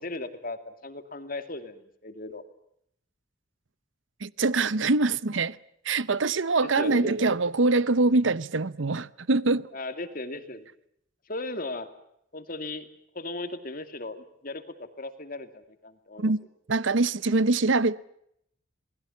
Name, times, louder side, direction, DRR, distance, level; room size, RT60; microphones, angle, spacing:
voice 1, 0.0-2.4 6.6-7.2 9.7-10.7 11.3-11.9 12.3-12.8 13.1-16.3, left 2 dB, 45° left, 2.5 m, -37 dB
voice 2, 4.2-5.6 5.8-9.7 16.2-16.4 16.7-18.0, right 3 dB, 75° right, 0.9 m, -24 dB
28.5 x 20.0 x 7.1 m
head